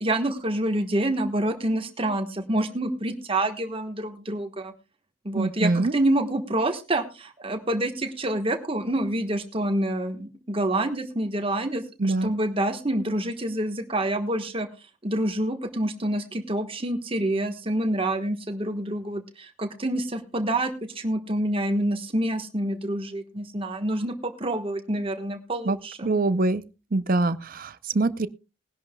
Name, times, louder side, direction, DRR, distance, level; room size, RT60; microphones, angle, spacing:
voice 1, 0.0-4.7 5.2-14.7 15.0-26.1, right 1 dB, 25° right, 1.3 m, -27 dB
voice 2, 5.3-5.9 12.0-12.3 25.7-26.6 26.9-28.3, right 2 dB, 40° right, 0.5 m, -24 dB
21.0 x 11.0 x 2.2 m
head